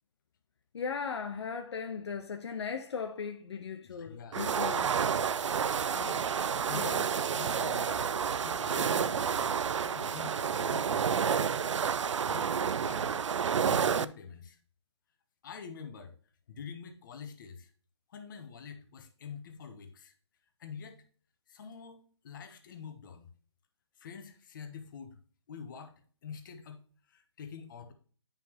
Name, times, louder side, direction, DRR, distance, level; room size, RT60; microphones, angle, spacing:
voice 1, 0.7-4.9 6.7-6.9, left 6 dB, 65° left, 0.8 m, -37 dB
voice 2, 3.8-4.4 5.9-6.3 6.6-8.1 8.4-11.7 12.3-13.2 13.6-14.6 15.4-16.1 16.5-17.7 18.1-20.1 20.6-21.0 21.5-23.3 24.0-25.2 25.5-25.9 26.2-27.9, left 6 dB, 45° left, 1.3 m, -46 dB
sound 1, 4.3-14.0, right 7 dB, 85° right, 0.5 m, -30 dB
9.5 x 5.4 x 2.9 m
hypercardioid pair, 160°, 15 cm